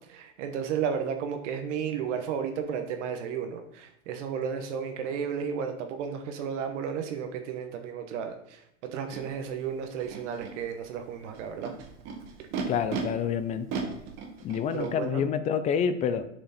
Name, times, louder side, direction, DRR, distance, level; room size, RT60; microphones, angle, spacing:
voice 1, 0.1-11.7 12.4-12.5 14.7-15.3, right 7 dB, 65° right, 6 dB, 1.1 m, -33 dB
Animal, 9.1-9.2 10.0-10.5 11.3-13.0 13.7-14.9, right 5 dB, 45° right, 1.7 m, -36 dB
voice 2, 12.7-13.7 14.4-16.3, left 7 dB, 20° left, 12 dB, 0.3 m, -28 dB
7.2 x 5.1 x 4.2 m, 0.78 s
hypercardioid pair, 115°, 39 cm